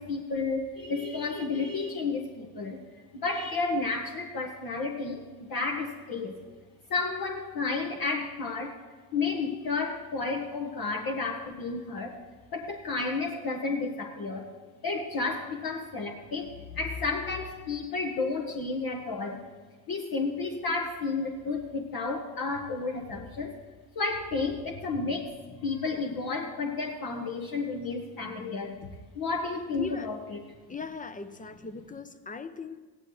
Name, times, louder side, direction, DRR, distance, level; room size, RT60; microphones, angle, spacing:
voice 1, 0.0-2.8 3.1-5.2 5.5-6.4 6.9-8.8 9.1-12.2 12.5-14.5 14.8-19.4 19.9-23.6 23.9-28.9 29.1-30.4, left 4 dB, 50° left, 1 dB, 1.4 m, -32 dB
voice 2, 29.8-30.2 30.7-32.8, left 4 dB, 20° left, 11 dB, 0.8 m, -39 dB
16.0 x 11.0 x 3.2 m, 1.4 s
hypercardioid pair, 60°, 44 cm